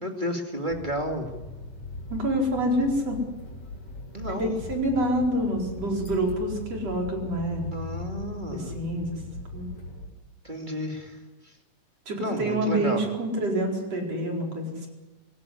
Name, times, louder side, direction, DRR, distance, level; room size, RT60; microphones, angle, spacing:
voice 1, 0.0-1.3 4.1-4.6 7.7-8.8 10.4-11.2 12.2-13.0, equal, 15° right, 3 dB, 2.0 m, -31 dB
sound 1, 0.7-10.1, left 3 dB, 45° left, 5.9 m, -39 dB
voice 2, 2.1-3.2 4.2-7.7 8.5-9.2 9.5-9.7 12.1-14.9, right 1 dB, 45° right, 1 dB, 5.6 m, -27 dB
24.0 x 17.0 x 9.8 m, 1.2 s
omnidirectional pair, 4.0 m